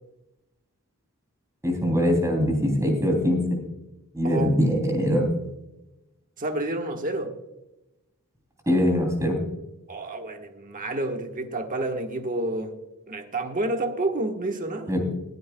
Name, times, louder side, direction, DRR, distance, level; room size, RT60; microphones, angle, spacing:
voice 1, 1.6-3.6 4.1-5.3 8.7-9.4 14.9-15.0, equal, 15° right, 2 dB, 2.9 m, -22 dB
voice 2, 6.4-7.3 9.9-12.7 13.1-15.0, right 2 dB, 35° right, 5 dB, 1.3 m, -29 dB
21.0 x 9.6 x 2.2 m, 0.96 s
head